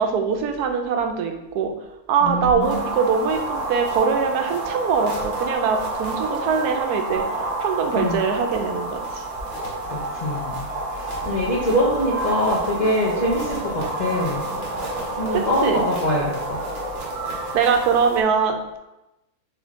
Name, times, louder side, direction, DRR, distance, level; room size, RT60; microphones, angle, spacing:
voice 1, 0.0-1.7 2.1-7.2 7.6-9.2 15.3-15.8 17.5-18.8, right 6 dB, 85° right, 5 dB, 1.1 m, -22 dB
voice 2, 2.2-2.8 7.9-8.2 9.9-14.4 15.2-16.6, left 1 dB, 50° left, -5 dB, 0.5 m, -24 dB
sound 1, 2.6-18.2, right 2 dB, 45° right, 1.3 m, -29 dB
3.5 x 3.3 x 3.6 m, 0.93 s
omnidirectional pair, 1.6 m